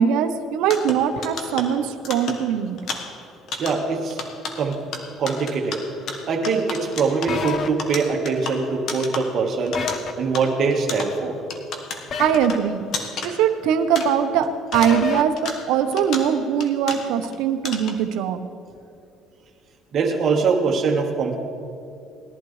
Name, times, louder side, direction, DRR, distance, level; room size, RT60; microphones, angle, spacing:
voice 1, 0.0-2.8 12.2-12.8 13.2-18.4, right 8 dB, 80° right, 8 dB, 0.8 m, -21 dB
sound 1, 0.6-14.5 14.7-17.3 17.6-18.1, left 4 dB, 60° left, 1.3 m, -34 dB
voice 2, 3.6-4.2 4.6-4.8 5.2-5.8 6.3-9.8 10.2-11.4 19.9-21.4, right 4 dB, 50° right, 1 dB, 1.5 m, -23 dB
sound 2, 7.3-7.7 9.7-10.1 12.1-12.6 14.7-15.2, left 6 dB, 45° left, 0.8 m, -27 dB
20.0 x 11.5 x 3.2 m, 2.6 s
cardioid pair, 110°, 0 cm